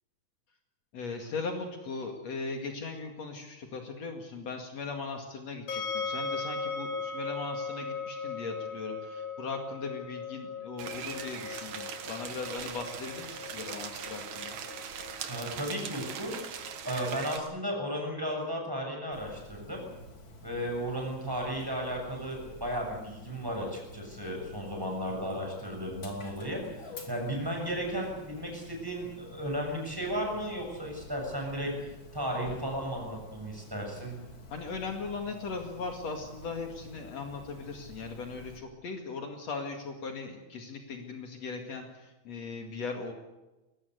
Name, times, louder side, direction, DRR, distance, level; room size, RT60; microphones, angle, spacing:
voice 1, 0.9-14.6 34.5-43.1, left 4 dB, 65° left, 3 dB, 3.2 m, -38 dB
sound 1, 5.7-18.7, left 4 dB, 85° left, 4.3 m, -39 dB
sound 2, 10.8-17.4, right 8 dB, 80° right, 3.0 m, -40 dB
voice 2, 15.3-16.3 16.8-19.8 20.4-31.7 32.1-34.2, equal, 5° right, 0 dB, 7.3 m, -34 dB
Dog, 19.1-38.6, left 1 dB, 40° left, 3.6 m, -50 dB
22.0 x 19.0 x 8.1 m, 1.0 s
omnidirectional pair, 3.3 m